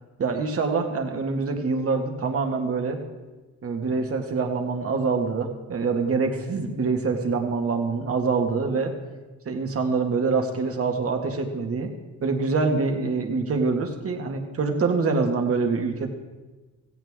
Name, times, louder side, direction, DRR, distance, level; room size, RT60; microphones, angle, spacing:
voice 1, 0.2-3.0 3.6-8.9 9.5-11.9 12.2-16.1, right 4 dB, 50° right, 4 dB, 2.0 m, -25 dB
16.5 x 15.5 x 3.7 m, 1.2 s
cardioid pair, 90°, 30 cm